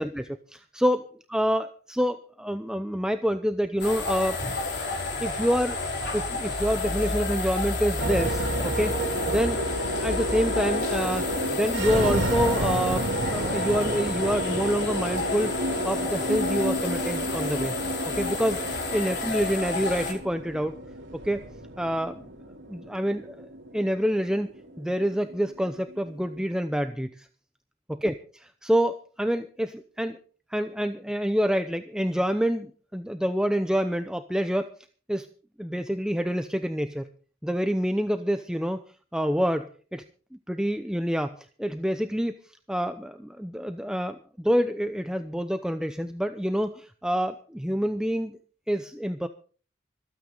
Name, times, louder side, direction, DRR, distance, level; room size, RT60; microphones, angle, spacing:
voice 1, 0.0-4.4 4.6-4.8 5.2-5.8 6.1-9.0 9.3-9.6 9.9-11.2 11.5-15.5 15.8-17.7 18.1-20.8 21.1-21.4 21.8-22.2 22.7-23.5 23.7-24.5 24.8-27.3 28.0-28.1 28.6-30.2 30.5-34.7 35.1-35.3 35.6-37.1 37.4-38.8 39.1-40.0 40.5-42.3 42.7-48.4 48.7-49.3, equal, 5° right, 8 dB, 0.7 m, -27 dB
sound 1, 3.8-20.1, left 3 dB, 65° left, 4.5 m, -31 dB
sound 2, 8.0-26.4, right 1 dB, 90° right, 2.8 m, -31 dB
25.5 x 9.2 x 4.0 m, 0.41 s
head